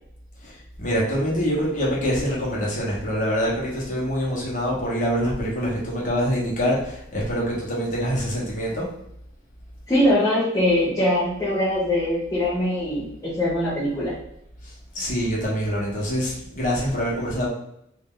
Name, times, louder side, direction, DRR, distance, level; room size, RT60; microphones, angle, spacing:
voice 1, 0.8-8.8 14.9-17.5, equal, 45° left, -5 dB, 1.2 m, -25 dB
voice 2, 9.9-14.1, left 1 dB, 20° left, -9 dB, 0.9 m, -22 dB
3.2 x 2.7 x 3.8 m, 0.75 s
head